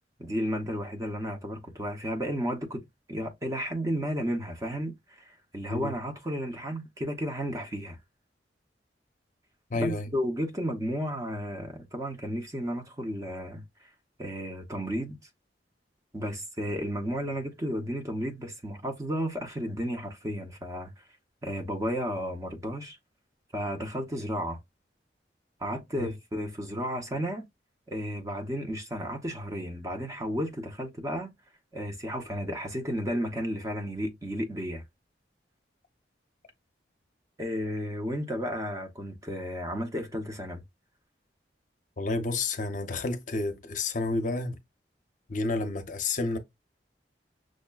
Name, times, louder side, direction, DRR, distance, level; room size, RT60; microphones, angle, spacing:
voice 1, 0.2-2.8 3.1-8.0 9.7-13.9 14.2-15.2 16.1-21.0 21.4-23.0 23.5-24.6 25.6-27.4 27.9-31.3 31.7-34.8 37.4-40.6, equal, 20° right, 0.6 m, -33 dB
voice 2, 9.7-10.1 26.0-26.1 42.0-44.6 45.3-46.4, left 3 dB, 45° left, 0.6 m, -30 dB
6.2 x 2.1 x 2.2 m
head